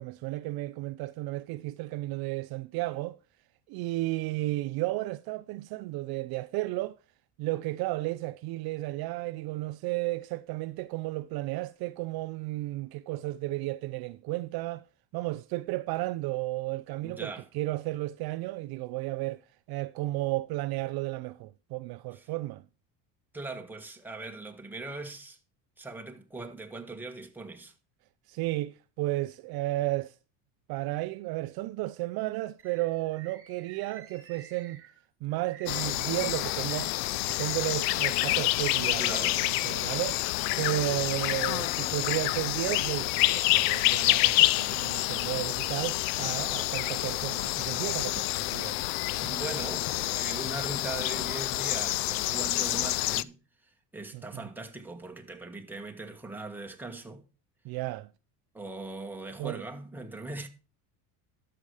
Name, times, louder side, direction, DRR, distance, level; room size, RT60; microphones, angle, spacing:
voice 1, 0.0-3.2 3.7-6.9 7.4-14.8 15.1-22.6 28.3-30.2 30.7-34.8 35.2-36.9 37.4-40.2 40.6-48.8 49.2-49.3 54.1-54.5 57.6-58.1 59.4-59.6, right 18 dB, 55° right, 0.5 m, -33 dB
voice 2, 17.0-17.5 22.1-22.3 23.3-25.4 25.8-27.7 39.0-39.4 48.1-48.2 49.3-57.2 58.5-60.5, right 2 dB, 5° right, 1.5 m, -40 dB
Bird, 32.6-41.5 42.0-43.0 43.6-44.6 45.0-46.4 46.9-51.1 51.8-52.3, right 7 dB, 30° right, 1.9 m, -55 dB
sound 1, 35.7-53.2, left 18 dB, 70° left, 0.6 m, -28 dB
12.0 x 6.8 x 4.8 m
cardioid pair, 120°, 44 cm